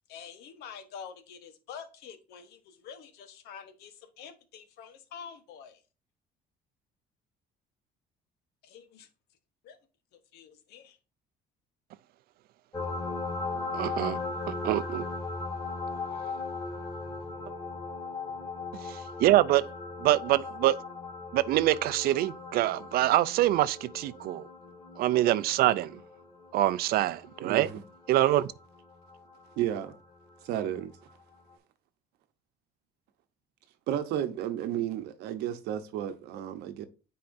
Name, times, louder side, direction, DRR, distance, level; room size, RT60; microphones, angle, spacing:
voice 1, 0.1-5.8 8.6-9.1 9.6-9.8 10.1-11.0, left 7 dB, 80° left, 1.1 m, -47 dB
sound 1, 12.7-30.0 31.5-31.6, left 3 dB, 20° left, 1.7 m, -38 dB
voice 2, 13.7-14.2 14.5-15.1 18.8-19.7 20.0-20.8 21.3-24.5 25.0-26.0 26.5-27.7 28.1-28.5, right 14 dB, 65° right, 0.4 m, -25 dB
voice 3, 27.4-27.8 29.6-29.9 30.4-30.9 33.9-36.8, right 11 dB, 85° right, 0.9 m, -32 dB
9.3 x 4.3 x 2.6 m
cardioid pair, 120°, 17 cm